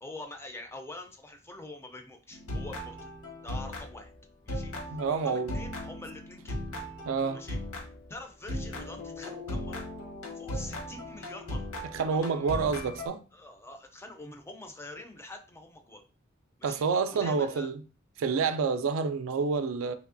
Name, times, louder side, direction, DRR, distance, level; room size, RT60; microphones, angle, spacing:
voice 1, 0.0-3.1 3.4-4.1 4.4-6.6 7.3-7.6 8.1-9.8 10.3-12.8 13.3-16.0 16.6-16.8 17.1-17.7, left 2 dB, 10° left, 0.4 m, -45 dB
sound 1, 2.3-4.2 4.5-8.1 8.5-13.1, left 1 dB, 85° left, 0.9 m, -38 dB
voice 2, 4.9-5.5 7.1-7.4 11.9-13.2 16.6-17.7 18.2-19.9, right 5 dB, 70° right, 0.3 m, -28 dB
3.3 x 3.0 x 2.5 m
head